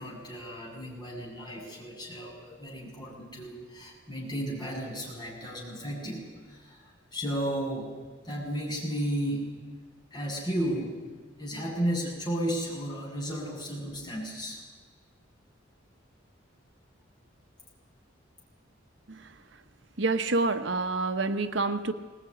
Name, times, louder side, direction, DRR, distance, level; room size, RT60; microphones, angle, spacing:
voice 1, 0.0-7.9 8.2-9.6 10.1-11.0 11.4-14.6, equal, 20° left, -3 dB, 7.7 m, -34 dB
voice 2, 20.0-21.9, right 3 dB, 65° right, 8 dB, 1.1 m, -27 dB
22.0 x 19.0 x 10.0 m, 1.5 s
head